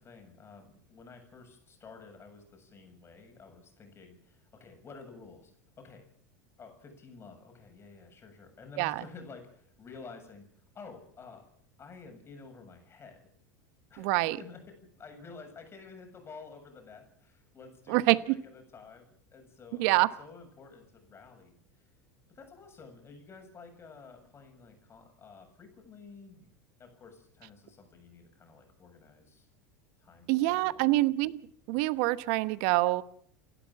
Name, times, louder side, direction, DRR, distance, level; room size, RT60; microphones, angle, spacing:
voice 1, 0.0-5.5 5.8-6.1 6.6-10.5 10.7-11.4 11.8-13.2 13.9-14.6 15.0-21.5 22.3-26.5 26.8-29.5 30.0-31.0, left 4 dB, 30° left, 5 dB, 7.3 m, -51 dB
voice 2, 14.0-14.4 17.9-18.4 19.8-20.1 30.3-31.4 31.7-33.0, right 19 dB, 60° right, 16 dB, 1.1 m, -26 dB
29.5 x 12.0 x 7.3 m, 0.63 s
hypercardioid pair, 90°, 9 cm